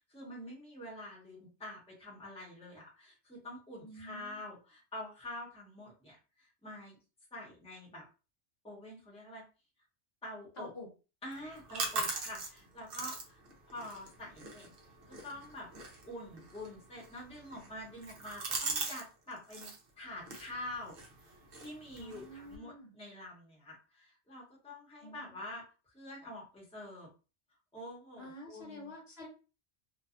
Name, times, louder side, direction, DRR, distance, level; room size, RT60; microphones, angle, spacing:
voice 1, 0.1-7.0 7.3-8.0 8.6-9.4 10.2-10.7 11.2-13.4 13.7-14.7 15.1-15.7 16.1-20.9 21.2-25.6 25.9-27.1 27.7-28.9, left 1 dB, 5° left, -4 dB, 0.9 m, -46 dB
voice 2, 3.8-4.4 10.6-10.9 22.0-22.9 25.0-25.4 28.2-29.3, left 1 dB, 60° left, -2 dB, 1.2 m, -48 dB
sound 1, 11.3-19.1 19.3-19.8 20.2-22.6, right 3 dB, 60° right, 0.8 m, -41 dB
2.6 x 2.3 x 2.4 m, 0.32 s
omnidirectional pair, 1.2 m